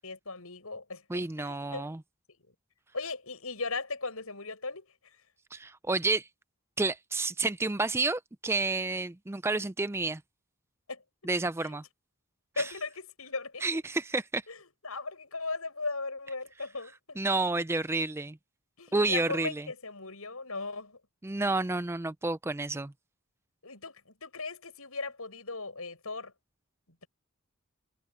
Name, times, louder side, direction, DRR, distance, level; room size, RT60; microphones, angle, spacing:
voice 1, 0.0-1.0 1.4-1.9 2.9-4.9 10.9-11.3 11.6-11.7 12.6-13.6 14.5-14.6 14.8-17.2 18.8-21.0 23.6-26.3, left 3 dB, 75° left, 7.9 m, -37 dB
voice 2, 1.1-2.0 5.5-6.3 6.8-10.2 11.2-11.8 12.6-12.7 13.6-14.4 17.2-18.4 18.9-19.7 21.2-22.9, right 3 dB, 10° right, 0.4 m, -30 dB
head